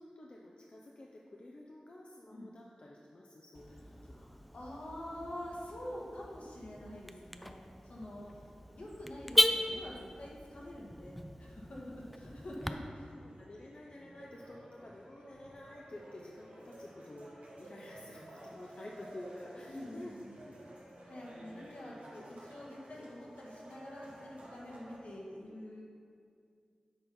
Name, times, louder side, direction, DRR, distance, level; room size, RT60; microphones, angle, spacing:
voice 1, 0.0-4.3 8.2-8.5 12.0-12.1 12.6-12.7 13.2-20.2 20.4-20.8, left 1 dB, 50° left, -2 dB, 0.6 m, -51 dB
Car / Alarm, 3.5-12.7, equal, ahead, 0.4 m, -37 dB
voice 2, 4.0-8.3 8.7-13.2 19.7-20.3 21.0-25.8, left 1 dB, 75° left, -4 dB, 1.5 m, -46 dB
sound 1, 12.8-25.0, right 1 dB, 80° right, 1.2 m, -53 dB
7.0 x 4.1 x 5.5 m, 2.3 s
cardioid pair, 50°, 2 cm